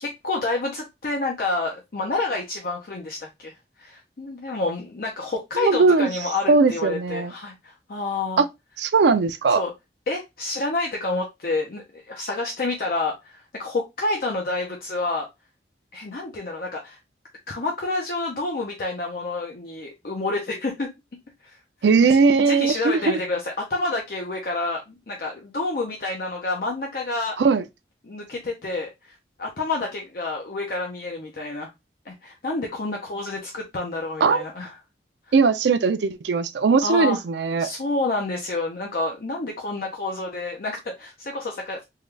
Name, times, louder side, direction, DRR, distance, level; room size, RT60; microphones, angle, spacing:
voice 1, 0.0-8.4 9.5-9.7 10.1-15.3 15.9-17.0 17.5-20.9 21.4-21.6 22.4-27.4 28.0-31.7 32.0-34.7 36.8-37.2 37.6-41.8, left 2 dB, 55° left, 0.6 m, -29 dB
voice 2, 5.6-6.1 6.5-7.3 8.4-8.5 8.8-9.6 21.8-23.2 27.4-27.6 34.2-34.4 35.3-37.7, right 4 dB, 75° right, 0.4 m, -19 dB
3.7 x 2.2 x 3.1 m
head